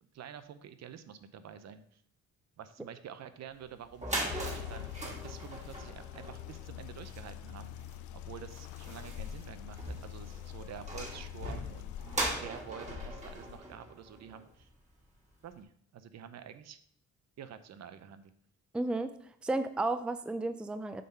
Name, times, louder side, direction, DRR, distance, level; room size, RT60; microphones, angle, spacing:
voice 1, 0.0-2.0 2.6-7.7 8.1-11.9 12.4-14.7 15.4-16.8 17.4-18.3, right 8 dB, 60° right, 11 dB, 0.7 m, -48 dB
sound 1, 3.6-3.7 3.9-14.7, right 1 dB, 25° right, 2.4 m, -40 dB
sound 2, 4.3-13.6, left 12 dB, 75° left, 0.5 m, -44 dB
voice 2, 18.7-19.1 19.4-21.0, right 2 dB, 5° right, 10 dB, 0.4 m, -32 dB
7.5 x 3.8 x 5.5 m, 0.63 s
cardioid pair, 90°, 30 cm